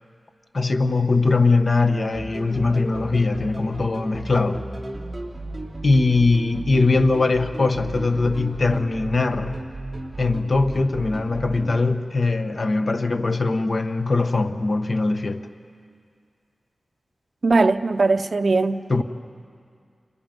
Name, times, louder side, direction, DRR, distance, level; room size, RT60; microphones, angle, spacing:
voice 1, 0.5-4.6 5.8-9.6 10.2-15.4 18.9-19.0, left 3 dB, 50° left, 1.1 m, -21 dB
sound 1, 2.1-11.8, right 2 dB, 20° right, 3.1 m, -34 dB
voice 2, 17.4-19.0, right 3 dB, 55° right, 0.7 m, -20 dB
29.5 x 29.0 x 5.3 m
wide cardioid pair, 90°, 0 cm